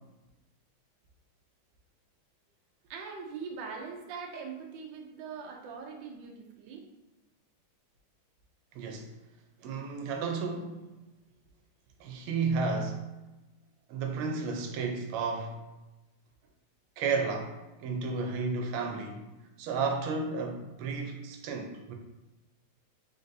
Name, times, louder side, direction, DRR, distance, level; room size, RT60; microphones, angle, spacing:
voice 1, 2.9-6.9, right 5 dB, 70° right, 2 dB, 1.2 m, -42 dB
voice 2, 8.8-9.1 9.6-10.8 12.0-13.0 13.9-15.6 17.0-19.2 19.6-21.9, right 4 dB, 90° right, 3 dB, 1.5 m, -32 dB
3.9 x 3.8 x 2.6 m, 1.0 s
omnidirectional pair, 2.3 m